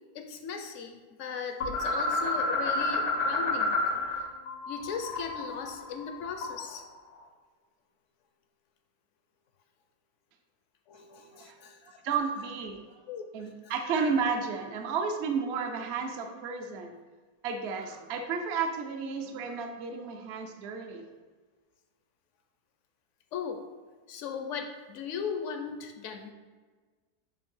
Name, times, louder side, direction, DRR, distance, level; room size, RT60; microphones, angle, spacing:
voice 1, 0.1-3.8 4.2-4.3 4.7-6.8 10.9-12.0 13.1-13.7 23.3-23.6 24.1-26.3, left 6 dB, 65° left, 6 dB, 0.7 m, -38 dB
sound 1, 1.6-4.2 4.5-6.8, left 2 dB, 90° left, 1.6 m, -30 dB
voice 2, 12.0-12.8 13.3-16.9 17.4-21.1, right 5 dB, 65° right, 4 dB, 0.6 m, -32 dB
7.1 x 2.7 x 5.4 m, 1.4 s
omnidirectional pair, 1.8 m